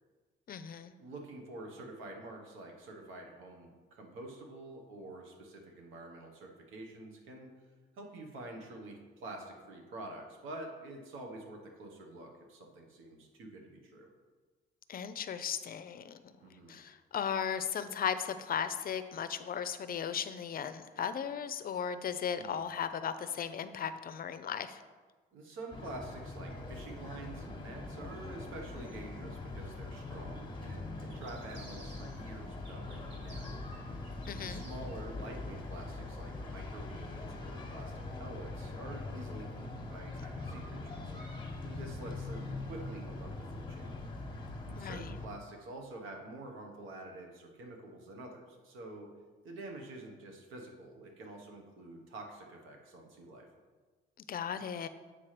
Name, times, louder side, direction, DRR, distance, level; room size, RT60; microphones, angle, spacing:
voice 1, 0.5-0.9 14.9-16.3 16.7-24.8 34.3-34.6 44.8-45.1 54.3-54.9, left 8 dB, 45° left, 12 dB, 0.5 m, -36 dB
voice 2, 1.0-7.5 7.9-14.1 16.4-16.8 22.4-22.7 25.3-33.6 34.4-41.1 41.6-44.0 44.6-49.1 49.4-53.5, right 2 dB, 90° right, 2 dB, 1.2 m, -47 dB
sound 1, 25.7-45.3, left 2 dB, 25° left, 1.1 m, -42 dB
sound 2, 31.1-32.3 32.6-35.0, right 2 dB, 60° right, 2.1 m, -55 dB
7.9 x 3.3 x 5.8 m, 1.4 s
cardioid pair, 90°, 20 cm